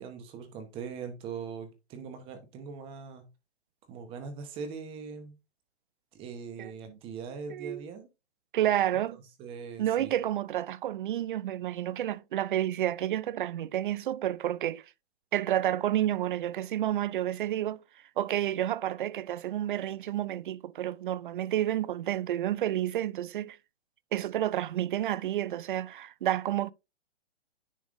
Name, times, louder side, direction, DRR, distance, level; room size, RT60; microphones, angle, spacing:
voice 1, 0.0-3.2 3.9-5.3 6.1-8.1 9.4-10.1, right 5 dB, 15° right, 1.0 m, -41 dB
voice 2, 6.6-7.0 7.5-7.9 8.5-9.2 9.8-14.8 15.3-17.8 18.2-23.6 24.1-26.7, right 12 dB, 50° right, 0.4 m, -30 dB
9.9 x 3.5 x 3.6 m
hypercardioid pair, 160°, 34 cm